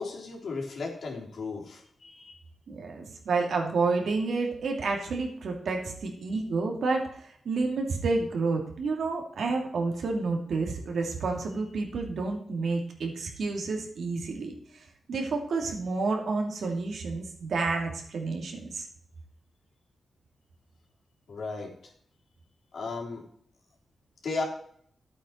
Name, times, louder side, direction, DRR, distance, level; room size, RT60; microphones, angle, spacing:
voice 1, 0.0-2.3 6.3-6.4 21.3-21.7 22.7-23.2 24.2-24.4, left 3 dB, 75° left, -1 dB, 3.6 m, -35 dB
voice 2, 2.7-7.1 7.4-14.5 15.1-18.8, right 3 dB, 80° right, 2 dB, 2.5 m, -29 dB
11.5 x 8.4 x 4.5 m, 0.62 s
cardioid pair, 75°, 0 cm